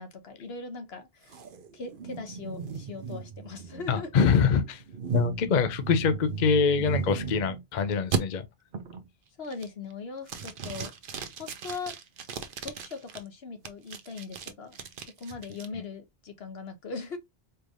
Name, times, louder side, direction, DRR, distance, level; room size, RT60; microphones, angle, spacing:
voice 1, 0.0-1.4 1.7-4.1 9.4-10.9 11.4-12.0 12.6-14.8 15.2-17.2, left 4 dB, 80° left, 1.2 m, -40 dB
sound 1, 1.3-7.6 8.1-8.2 8.7-9.1 9.5-9.9 10.3-13.2 13.7-15.7, right 6 dB, 60° right, 0.8 m, -36 dB
voice 2, 3.9-4.8 5.1-8.5, left 6 dB, 55° left, 0.7 m, -24 dB
4.5 x 3.2 x 2.4 m
omnidirectional pair, 1.0 m